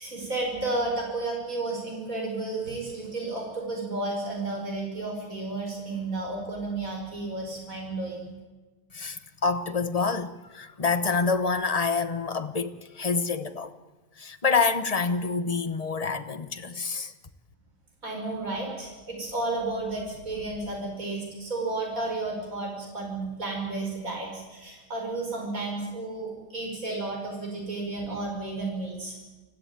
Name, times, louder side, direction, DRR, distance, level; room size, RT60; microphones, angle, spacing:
voice 1, 0.0-8.3 18.0-29.2, right 2 dB, 65° right, 5.9 m, -32 dB
voice 2, 8.9-13.7 14.2-17.1, left 4 dB, 25° left, 1.1 m, -27 dB
25.0 x 16.0 x 9.0 m
omnidirectional pair, 1.6 m